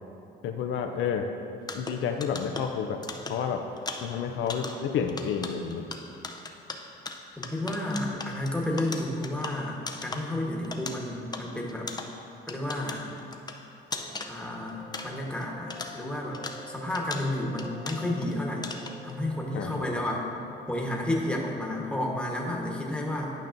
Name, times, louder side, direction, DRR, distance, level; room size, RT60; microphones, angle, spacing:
voice 1, 0.4-1.3 1.7-3.0 3.3-3.6 4.0-5.9 19.5-19.8, left 7 dB, 80° left, 5 dB, 0.5 m, -30 dB
sound 1, 1.6-15.4 15.7-18.3 18.6-19.1, left 3 dB, 20° left, 0.5 m, -40 dB
voice 2, 7.4-11.9 12.5-13.1 14.3-18.7 19.0-20.2 20.7-23.3, left 1 dB, 5° left, -2 dB, 1.2 m, -31 dB
sound 2, 13.9-22.4, left 1 dB, 20° right, 0.9 m, -49 dB
11.0 x 5.2 x 2.6 m, 2.7 s
cardioid pair, 90°, 20 cm